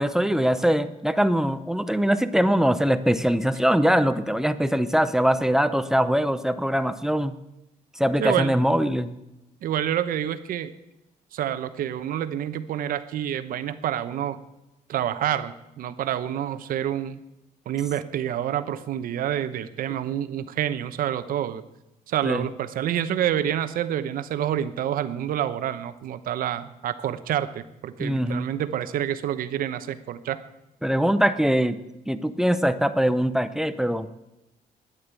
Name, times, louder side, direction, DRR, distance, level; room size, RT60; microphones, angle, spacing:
voice 1, 0.0-7.3 8.0-9.1 22.2-22.5 28.0-28.5 30.8-31.8 32.1-34.1, equal, 5° right, 11 dB, 0.6 m, -22 dB
voice 2, 8.2-8.5 9.6-10.7 11.3-14.4 14.9-17.2 17.7-21.6 22.1-30.4, right 10 dB, 75° right, 11 dB, 1.0 m, -28 dB
13.5 x 11.0 x 8.3 m, 0.91 s
cardioid pair, 180°, 15 cm